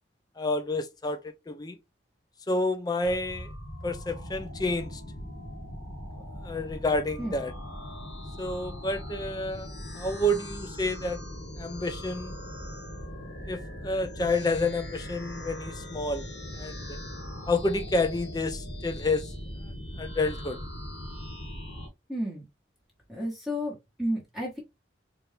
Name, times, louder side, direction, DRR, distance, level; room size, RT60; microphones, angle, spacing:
voice 1, 0.4-1.8 2.5-3.5 3.8-5.0 6.4-7.5 8.4-11.2 11.6-12.4 13.5-16.3 16.5-17.0 17.5-19.3 20.0-20.6, left 2 dB, 20° left, 0.5 m, -29 dB
sound 1, 3.0-21.9, equal, 75° left, 1.5 m, -40 dB
voice 2, 22.1-22.4 23.1-24.6, equal, ahead, 1.3 m, -32 dB
4.2 x 2.6 x 3.3 m
head